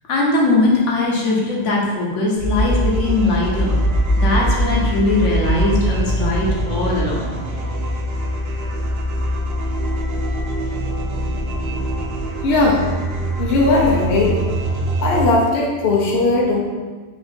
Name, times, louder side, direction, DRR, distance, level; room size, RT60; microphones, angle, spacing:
voice 1, 0.1-3.8 4.2-7.4, left 2 dB, 85° left, -3 dB, 1.2 m, -20 dB
sound 1, 2.3-15.2, right 1 dB, 60° right, 0.9 m, -22 dB
voice 2, 12.4-12.8 13.4-14.4 15.0-16.6, left 3 dB, 60° left, -2 dB, 1.0 m, -17 dB
4.1 x 2.8 x 4.2 m, 1.4 s
omnidirectional pair, 1.2 m